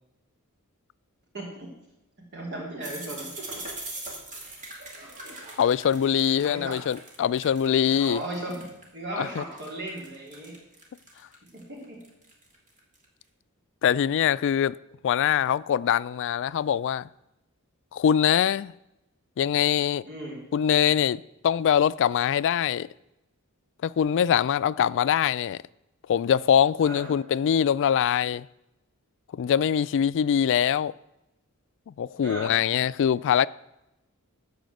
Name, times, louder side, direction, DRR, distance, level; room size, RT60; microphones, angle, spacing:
voice 1, 1.3-1.7 2.3-3.6 6.4-6.8 8.0-8.7 8.9-10.5 11.5-12.0 20.0-20.4 26.8-27.1 32.2-32.5, right 1 dB, 55° right, 3.4 m, -36 dB
sound 1, 2.8-8.8 9.2-13.0, right 2 dB, 35° right, 2.4 m, -41 dB
voice 2, 5.6-8.2 9.2-9.4 13.8-14.7 15.0-17.1 17.9-18.7 19.4-20.0 20.5-22.9 23.8-25.6 26.1-28.5 29.4-30.9 31.9-33.5, left 9 dB, 55° left, 0.3 m, -23 dB
13.5 x 5.0 x 7.7 m
head